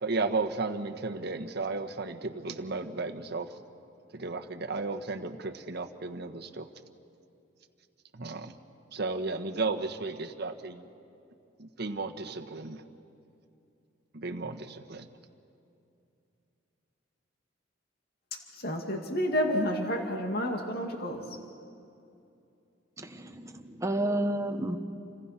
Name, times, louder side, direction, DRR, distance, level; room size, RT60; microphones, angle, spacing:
voice 1, 0.0-3.6 4.1-6.7 8.1-8.6 8.9-10.8 11.6-12.8 14.1-15.1, right 3 dB, 60° right, 5 dB, 1.3 m, -34 dB
voice 2, 18.5-21.4, equal, 55° left, 3 dB, 2.2 m, -30 dB
voice 3, 23.0-24.8, right 1 dB, 15° right, 5 dB, 1.3 m, -31 dB
29.5 x 25.5 x 5.9 m, 2.6 s
head